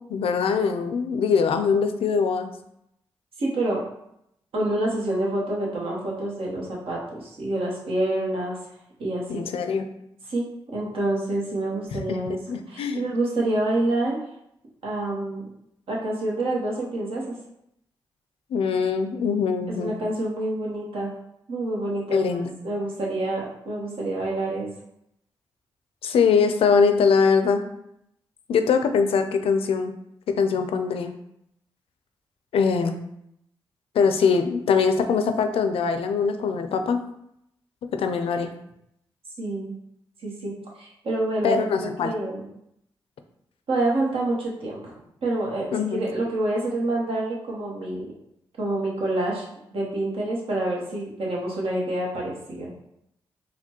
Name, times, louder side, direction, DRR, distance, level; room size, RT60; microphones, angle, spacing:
voice 1, 0.1-2.5 9.3-9.8 11.9-12.2 12.5-13.0 18.5-20.0 22.1-22.5 26.0-27.6 28.5-29.9 30.4-31.1 32.5-33.0 33.9-37.0 37.9-38.5 41.4-42.1 45.7-46.0, left 5 dB, 75° left, 8 dB, 0.4 m, -22 dB
voice 2, 3.4-3.8 4.5-8.6 9.0-9.4 10.3-10.5 10.7-12.4 12.7-14.2 14.8-15.4 15.9-17.2 19.7-21.1 21.5-24.7 39.4-39.8 40.2-42.5 43.7-44.9 45.2-45.6 45.9-48.1 48.6-52.7, right 2 dB, 70° right, -3 dB, 1.0 m, -27 dB
4.2 x 2.2 x 2.9 m, 0.77 s
supercardioid pair, 40°, 10 cm